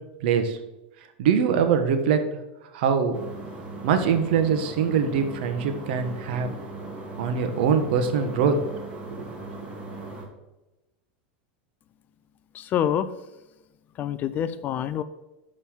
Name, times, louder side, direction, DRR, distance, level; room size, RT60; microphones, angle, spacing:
voice 1, 0.2-0.6 1.2-2.2 2.7-3.2 3.8-6.5 7.2-8.6 9.1-9.2, right 6 dB, 65° right, 8 dB, 1.2 m, -23 dB
sound 1, 3.1-10.3, right 2 dB, 15° right, 1.9 m, -38 dB
voice 2, 12.5-13.1 14.0-15.0, left 10 dB, 30° left, 14 dB, 0.4 m, -26 dB
6.4 x 5.5 x 7.2 m, 1.0 s
supercardioid pair, 145°, 6 cm